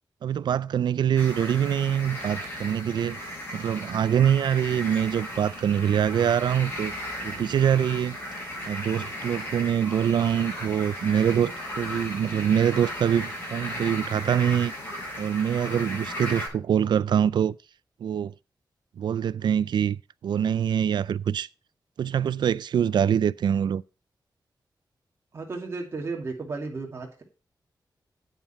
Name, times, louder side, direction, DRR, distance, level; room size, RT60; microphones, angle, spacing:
voice 1, 0.2-3.3 3.5-6.9 7.2-8.2 8.7-14.7 15.2-17.5 18.0-18.3 19.0-21.5 22.0-23.8, right 9 dB, 90° right, 0.4 m, -24 dB
sound 1, 1.2-16.5, equal, 30° left, 7.0 m, -36 dB
voice 2, 25.3-27.2, right 3 dB, 35° right, 2.6 m, -34 dB
9.2 x 9.2 x 4.4 m
wide cardioid pair, 170°, 7 cm